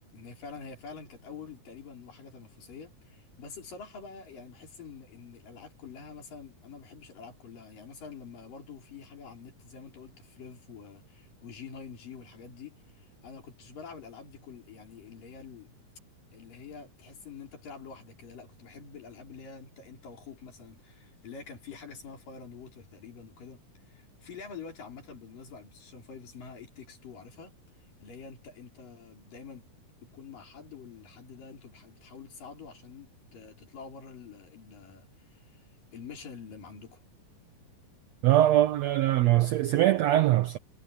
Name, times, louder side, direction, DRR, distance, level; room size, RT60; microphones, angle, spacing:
voice 1, 0.1-15.7 16.3-27.5 28.0-29.7 30.0-37.0, left 5 dB, 75° left, 6.7 m, -47 dB
voice 2, 38.2-40.6, right 14 dB, 75° right, 1.6 m, -22 dB
omnidirectional pair, 3.9 m